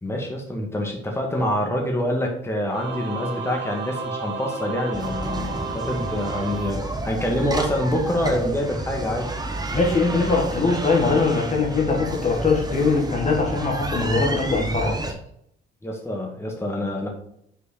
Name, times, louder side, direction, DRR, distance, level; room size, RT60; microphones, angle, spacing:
voice 1, 0.0-9.3 15.8-17.1, left 1 dB, 15° left, 0 dB, 1.8 m, -26 dB
Singing / Musical instrument, 2.7-7.5, right 4 dB, 60° right, 1.2 m, -33 dB
sound 1, 4.9-15.1, right 2 dB, 20° right, 1.1 m, -30 dB
voice 2, 9.7-15.0, left 4 dB, 35° left, 0 dB, 1.5 m, -21 dB
5.8 x 4.6 x 4.3 m, 0.72 s
cardioid pair, 90°, 20 cm